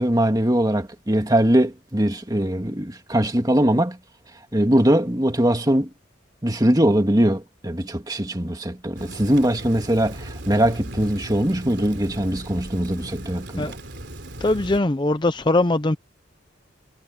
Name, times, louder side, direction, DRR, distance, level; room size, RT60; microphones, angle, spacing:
voice 1, 0.0-4.0 4.5-5.9 6.4-13.8, right 1 dB, 20° right, 1.9 m, -21 dB
Rain, 8.9-14.8, right 1 dB, 60° right, 3.9 m, -37 dB
voice 2, 14.4-16.0, left 2 dB, 25° left, 0.6 m, -21 dB
head